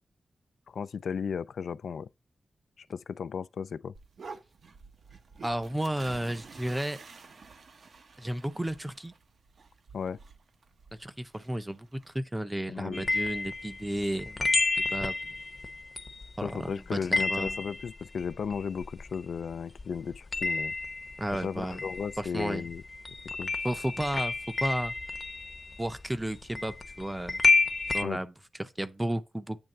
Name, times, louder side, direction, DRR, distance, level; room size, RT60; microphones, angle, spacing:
voice 1, 0.7-2.1 2.8-3.9 9.9-10.2 12.7-13.1 16.4-20.7 21.3-22.8 23.4-23.5 28.0-28.2, left 6 dB, 85° left, 0.3 m, -35 dB
sound 1, 3.9-12.2, right 4 dB, 60° right, 0.8 m, -50 dB
voice 2, 5.4-7.0 8.2-9.1 11.0-15.3 16.4-17.6 21.2-21.8 22.2-22.7 23.6-24.9 25.8-27.4 27.9-28.3 28.6-29.6, right 1 dB, 10° right, 0.6 m, -33 dB
sound 2, 12.9-19.5 19.8-28.0, left 3 dB, 30° left, 0.7 m, -31 dB
8.9 x 3.4 x 6.5 m
wide cardioid pair, 160°, 0 cm